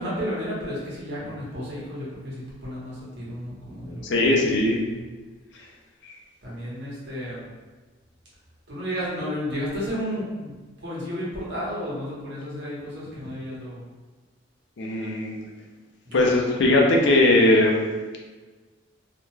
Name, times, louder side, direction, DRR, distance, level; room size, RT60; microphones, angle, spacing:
voice 1, 0.0-4.8 6.4-7.5 8.7-13.8 16.0-16.4, equal, 60° right, -7 dB, 1.0 m, -32 dB
voice 2, 4.1-4.8 14.8-15.4 16.1-17.9, left 2 dB, 65° left, 0 dB, 0.5 m, -19 dB
2.5 x 2.2 x 3.1 m, 1.3 s
head